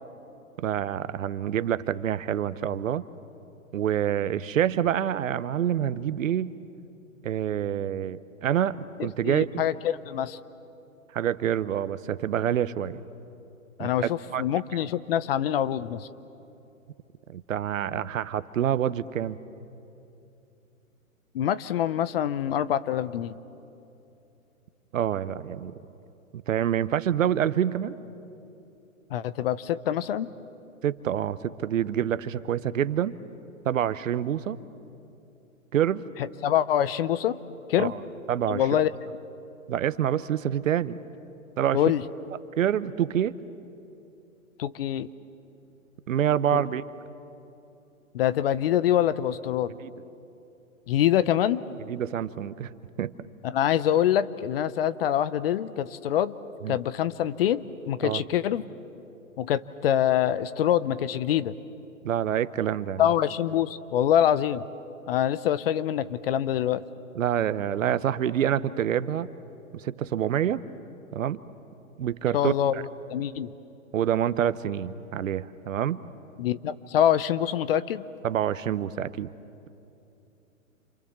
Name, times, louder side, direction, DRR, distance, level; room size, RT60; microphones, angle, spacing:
voice 1, 0.6-3.0 3.7-6.6 7.2-9.7 11.1-13.0 13.8-13.9 14.3-14.4 17.3-19.4 24.9-25.7 26.5-28.0 30.8-33.2 33.6-34.6 35.7-36.0 37.8-38.0 38.3-38.6 39.7-41.0 41.6-41.8 42.6-43.4 46.1-46.8 49.8-49.9 51.9-52.7 53.0-53.1 56.6-56.8 58.0-58.2 62.0-63.0 67.1-69.3 69.7-70.6 71.1-71.4 72.0-72.8 73.9-76.0 78.2-79.3, right 10 dB, 65° right, 15 dB, 1.0 m, -27 dB
voice 2, 9.0-10.4 13.8-16.1 21.3-23.4 29.1-30.3 36.2-37.4 37.7-37.9 38.5-38.9 41.7-42.0 44.6-45.1 46.5-46.6 48.1-49.7 50.9-51.6 53.4-56.3 56.7-58.6 59.4-61.5 63.0-64.6 65.1-66.8 72.3-73.5 76.4-78.0, left 10 dB, 45° left, 16 dB, 0.8 m, -25 dB
28.5 x 27.0 x 7.3 m, 2.8 s
hypercardioid pair, 140°, 42 cm